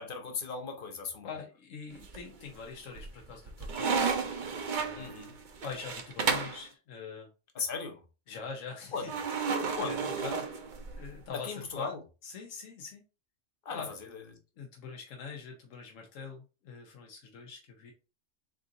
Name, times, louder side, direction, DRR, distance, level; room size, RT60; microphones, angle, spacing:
voice 1, 0.0-1.3 4.9-5.4 7.5-8.0 8.9-9.3 9.7-10.1 11.3-12.0 13.6-14.2, left 5 dB, 50° left, 0.9 m, -37 dB
voice 2, 1.2-4.4 4.8-5.1 5.6-7.3 8.3-10.4 10.9-11.9 12.2-13.0 13.7-13.9 14.6-17.9, left 5 dB, 90° left, 1.1 m, -44 dB
sound 1, 2.0-2.5 3.0-6.6 9.1-11.1, right 5 dB, 50° right, 0.7 m, -32 dB
3.8 x 3.6 x 2.5 m
omnidirectional pair, 1.3 m